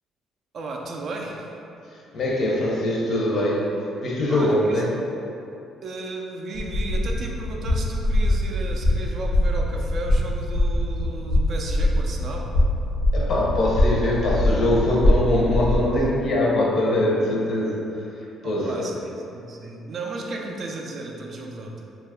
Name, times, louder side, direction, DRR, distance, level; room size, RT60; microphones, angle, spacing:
voice 1, 0.5-1.6 4.3-4.9 5.8-12.6 18.4-21.8, right 2 dB, 50° right, 1 dB, 0.3 m, -34 dB
voice 2, 1.9-3.8 4.0-4.9 13.1-18.9, left 1 dB, 50° left, -3 dB, 0.6 m, -23 dB
sound 1, 6.5-16.0, left 1 dB, 85° left, 0.9 m, -23 dB
2.8 x 2.3 x 3.5 m, 2.8 s
cardioid pair, 120°, 0 cm